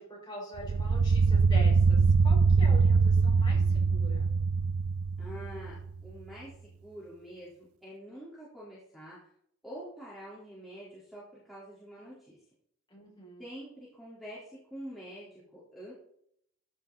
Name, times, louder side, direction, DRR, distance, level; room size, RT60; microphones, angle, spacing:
voice 1, 0.0-4.3 12.9-13.4, equal, 20° left, -4 dB, 6.0 m, -44 dB
sound 1, 0.6-5.8, right 4 dB, 85° right, 0.5 m, -23 dB
voice 2, 5.2-9.3 9.6-12.4 13.4-15.9, equal, ahead, -8 dB, 3.8 m, -46 dB
14.5 x 9.6 x 4.1 m, 0.69 s
head